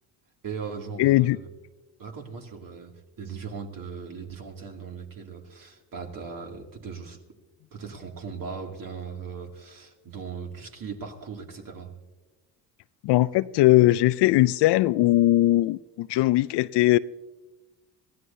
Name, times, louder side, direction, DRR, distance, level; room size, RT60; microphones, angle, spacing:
voice 1, 0.4-1.5 2.0-7.4 7.7-12.0, right 5 dB, 45° right, 2.6 m, -38 dB
voice 2, 1.0-1.4 13.0-17.0, left 17 dB, 60° left, 0.5 m, -20 dB
22.5 x 16.0 x 2.7 m
supercardioid pair, 75°, 47 cm